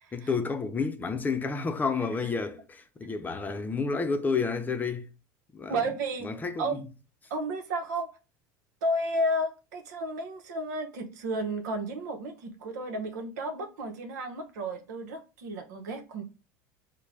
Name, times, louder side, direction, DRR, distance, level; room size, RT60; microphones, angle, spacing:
voice 1, 0.1-5.1 5.5-5.8 6.2-6.9, left 4 dB, 20° left, 0.6 m, -30 dB
voice 2, 5.7-6.3 6.6-6.8 7.3-8.1 8.8-16.2, right 1 dB, 85° right, 0.8 m, -32 dB
4.8 x 2.2 x 3.3 m
supercardioid pair, 100°, 9 cm